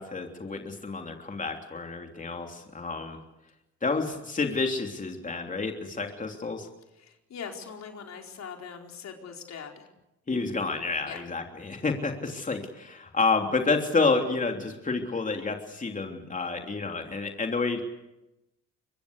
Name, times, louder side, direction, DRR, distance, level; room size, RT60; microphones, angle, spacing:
voice 1, 0.0-3.2 3.8-6.7 10.3-17.8, left 3 dB, 25° left, 3 dB, 3.2 m, -29 dB
voice 2, 6.9-9.9 11.0-11.2, left 6 dB, 60° left, 2 dB, 4.6 m, -41 dB
24.5 x 23.0 x 8.2 m, 0.93 s
cardioid pair, 90°, 30 cm